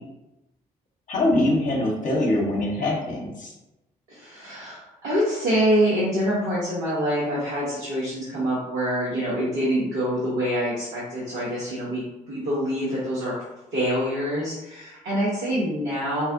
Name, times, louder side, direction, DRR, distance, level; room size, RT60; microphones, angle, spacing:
voice 1, 1.1-3.5, left 1 dB, 45° left, -2 dB, 0.9 m, -23 dB
voice 2, 4.1-13.4 13.7-16.3, equal, 70° right, -9 dB, 1.0 m, -25 dB
4.2 x 2.1 x 2.6 m, 0.97 s
figure-of-eight pair, 40°, 19 cm